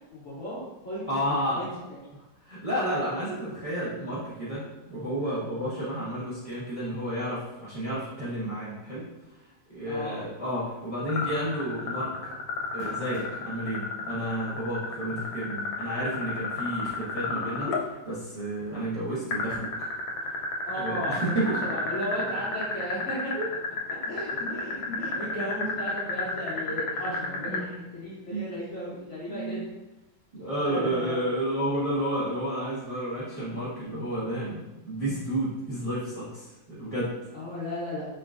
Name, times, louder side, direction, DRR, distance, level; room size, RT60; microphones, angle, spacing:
voice 1, 0.1-1.7 9.9-10.2 20.7-23.3 24.0-29.6 30.6-31.2 37.3-38.1, equal, 50° left, -8 dB, 1.0 m, -35 dB
voice 2, 1.1-1.8 2.4-4.6 4.9-9.0 9.7-12.1 12.7-19.9 20.7-21.5 23.3-23.5 27.5-27.7 28.3-28.5 29.3-29.6 30.3-37.1, right 1 dB, 25° right, -9 dB, 1.0 m, -31 dB
sound 1, 10.8-11.1 11.4-11.5 12.5-13.5 14.2-14.3 15.9-16.0, right 3 dB, 70° right, 1.5 m, -45 dB
sound 2, 11.1-17.8 19.3-27.6, left 3 dB, 85° left, 1.4 m, -31 dB
4.9 x 3.0 x 2.4 m, 1.0 s
omnidirectional pair, 2.0 m